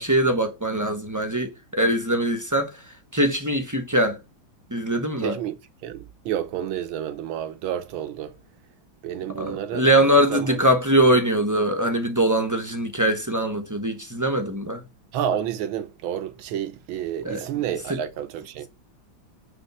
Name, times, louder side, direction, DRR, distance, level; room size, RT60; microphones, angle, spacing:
voice 1, 0.0-2.7 3.1-4.2 4.7-5.4 9.3-14.8 17.2-17.4 17.9-18.0, right 1 dB, 15° right, 0.6 m, -22 dB
voice 2, 5.2-8.3 9.0-10.6 15.1-18.7, right 10 dB, 85° right, 1.7 m, -30 dB
9.8 x 3.5 x 5.4 m
omnidirectional pair, 2.2 m